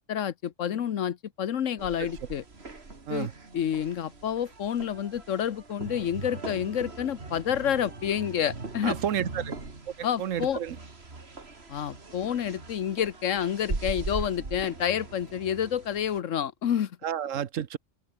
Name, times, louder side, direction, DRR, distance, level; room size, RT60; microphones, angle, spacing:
voice 1, 0.0-2.4 3.1-3.3 3.5-9.0 10.0-10.6 11.7-17.0, left 9 dB, 85° left, 1.3 m, -29 dB
sound 1, 1.8-16.2, right 3 dB, 55° right, 3.0 m, -40 dB
voice 2, 8.8-9.5 10.0-10.8 17.0-17.8, right 9 dB, 85° right, 1.3 m, -31 dB
open air
omnidirectional pair, 1.3 m